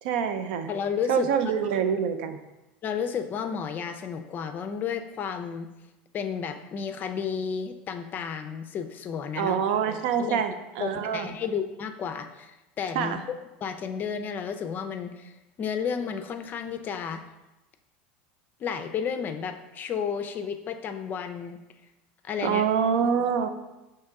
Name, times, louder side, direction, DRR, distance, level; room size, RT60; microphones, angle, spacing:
voice 1, 0.0-0.7 1.1-2.4 9.4-11.3 13.0-13.2 22.4-23.5, right 7 dB, 70° right, 8 dB, 0.4 m, -26 dB
voice 2, 0.7-1.3 2.8-5.7 6.1-9.6 10.2-10.4 10.8-13.2 13.6-17.2 18.6-21.6 22.2-22.6, left 7 dB, 35° left, 8 dB, 0.4 m, -32 dB
4.5 x 2.9 x 3.5 m, 1.0 s
hypercardioid pair, 100°, 5 cm